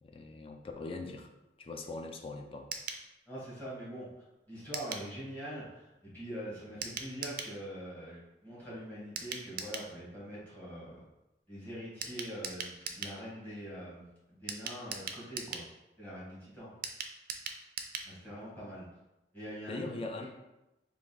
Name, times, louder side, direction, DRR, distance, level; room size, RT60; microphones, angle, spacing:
voice 1, 0.0-1.3 1.6-2.7 18.3-18.4 19.7-20.3, left 2 dB, 30° left, 4 dB, 0.3 m, -41 dB
sound 1, 2.7-3.0 4.7-5.1 6.8-7.5 9.2-9.9 12.0-13.2 14.5-15.7 16.8-18.1 18.4-18.5 18.8-18.9, right 6 dB, 50° right, 0.4 m, -40 dB
voice 2, 3.3-4.1 4.5-11.0 11.5-15.6 16.0-16.7 18.0-18.9 19.3-19.9 20.2-20.3, equal, 10° left, -8 dB, 1.5 m, -43 dB
3.6 x 2.4 x 3.8 m, 0.95 s
head